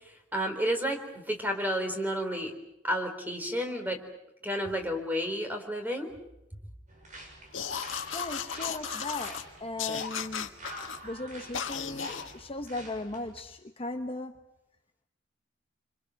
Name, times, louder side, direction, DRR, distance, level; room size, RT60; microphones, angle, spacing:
voice 1, 0.3-2.5 2.8-4.0 4.4-6.1, equal, 10° right, 5 dB, 3.9 m, -31 dB
sound 1, 6.9-13.4, right 1 dB, 40° right, 6.7 m, -47 dB
sound 2, 7.5-9.4 9.8-11.0 11.5-12.3, left 7 dB, 85° left, 1.7 m, -35 dB
voice 2, 8.1-10.5 11.0-14.4, left 2 dB, 30° left, 5 dB, 1.0 m, -37 dB
27.5 x 26.0 x 6.4 m, 0.85 s
head